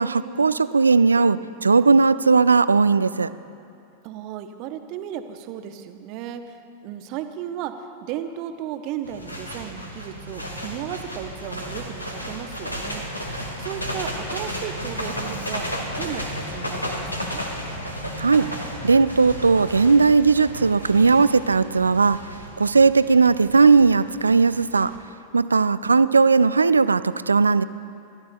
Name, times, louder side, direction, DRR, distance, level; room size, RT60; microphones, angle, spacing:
voice 1, 0.0-3.3 18.2-18.5 18.8-22.2 22.6-24.9 25.3-27.6, right 4 dB, 75° right, 16 dB, 0.3 m, -17 dB
voice 2, 4.0-13.1 13.6-15.7 16.0-17.4, right 10 dB, 40° right, 8 dB, 0.9 m, -35 dB
sound 1, 9.0-25.0, equal, 85° left, 1.6 m, -33 dB
29.0 x 13.5 x 2.3 m, 2.5 s
figure-of-eight pair, 90°, 0 cm